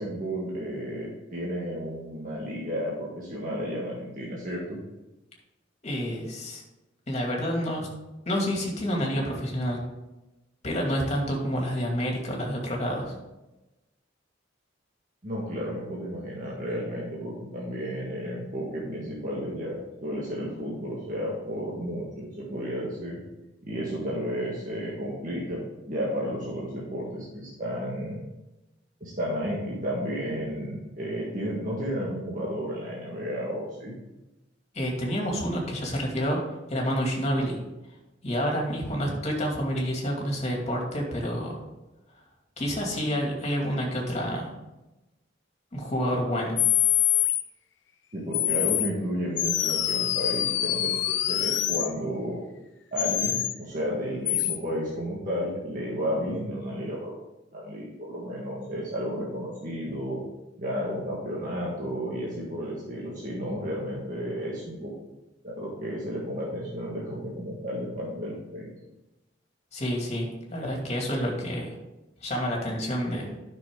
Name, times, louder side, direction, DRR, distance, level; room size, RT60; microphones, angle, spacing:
voice 1, 0.0-4.8 15.2-23.2 23.6-28.3 29.0-33.9 48.1-52.4 52.9-57.1 57.5-60.2 60.6-64.9 65.4-68.7, equal, 45° right, -6 dB, 1.8 m, -32 dB
voice 2, 5.8-6.6 7.1-7.9 8.3-9.8 10.6-13.1 34.7-36.4 36.7-37.6 38.2-41.6 42.6-44.5 45.7-46.6 69.7-71.8 72.2-73.3, equal, 35° left, -1 dB, 2.4 m, -28 dB
sound 1, 46.6-47.4 48.3-48.9 49.4-51.9 53.0-53.5 54.3-54.6, left 13 dB, 65° left, 0.6 m, -25 dB
11.5 x 6.1 x 3.7 m, 1.0 s
head